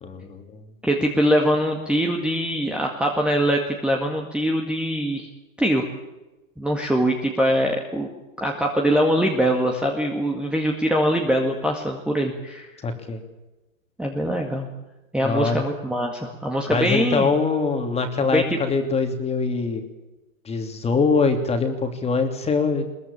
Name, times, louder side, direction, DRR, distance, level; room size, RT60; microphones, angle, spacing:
voice 1, 0.0-0.6 12.8-13.2 15.2-15.6 16.7-19.8 20.4-22.8, left 4 dB, 15° left, 6 dB, 3.0 m, -23 dB
voice 2, 0.8-5.3 5.6-5.9 6.6-8.1 8.4-12.7 14.0-14.7 15.1-17.3 18.3-18.4, equal, ahead, 1 dB, 2.0 m, -22 dB
22.0 x 21.5 x 8.7 m, 1.0 s
hypercardioid pair, 140°, 42 cm